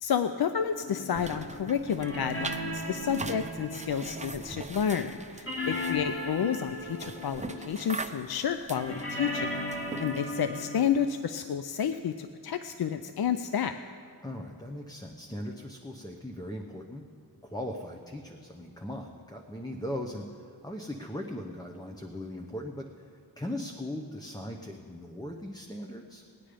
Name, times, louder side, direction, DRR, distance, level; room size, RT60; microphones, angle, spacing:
voice 1, 0.0-13.7, left 8 dB, 65° left, 9 dB, 0.5 m, -30 dB
sound 1, 0.8-5.1 5.5-8.3 8.7-10.8, left 1 dB, 30° left, 2.5 m, -37 dB
sound 2, 1.1-10.4, right 3 dB, 20° right, 0.7 m, -42 dB
voice 2, 5.7-6.1 10.1-10.6 14.2-17.0 17.4-22.9 23.4-26.2, left 1 dB, 10° left, 2 dB, 0.8 m, -39 dB
19.0 x 9.4 x 5.1 m, 2.3 s
wide cardioid pair, 70°, 40 cm